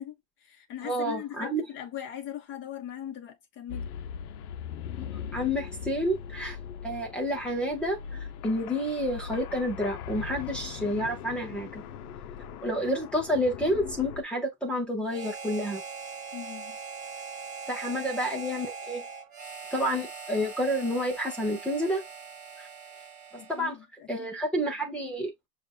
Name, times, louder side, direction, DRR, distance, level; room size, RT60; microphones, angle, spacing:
voice 1, 0.0-3.9 16.3-16.8 23.4-24.8, left 10 dB, 25° left, 1.2 m, -40 dB
voice 2, 0.8-1.6 5.0-5.1 5.3-6.6 6.8-11.8 12.6-15.8 17.7-19.0 19.7-22.0 22.6-22.7 23.3-23.8 24.1-25.3, equal, ahead, 0.4 m, -29 dB
sound 1, 3.7-14.2, left 7 dB, 65° left, 0.8 m, -40 dB
Harmonica, 15.1-23.7, right 5 dB, 15° right, 0.9 m, -41 dB
7.0 x 2.5 x 2.3 m
supercardioid pair, 170°, 49 cm